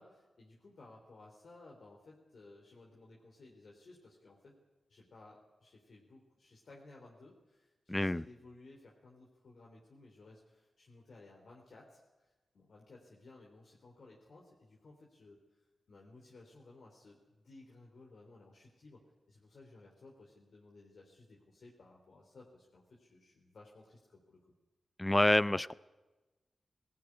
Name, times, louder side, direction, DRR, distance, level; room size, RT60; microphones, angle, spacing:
voice 1, 0.0-4.6 4.9-19.0 19.3-24.4, left 2 dB, 70° left, -2 dB, 3.4 m, -58 dB
voice 2, 7.9-8.2 25.0-25.7, left 1 dB, 20° left, 19 dB, 0.6 m, -27 dB
19.5 x 15.0 x 9.9 m, 1.1 s
cardioid pair, 45°, 0 cm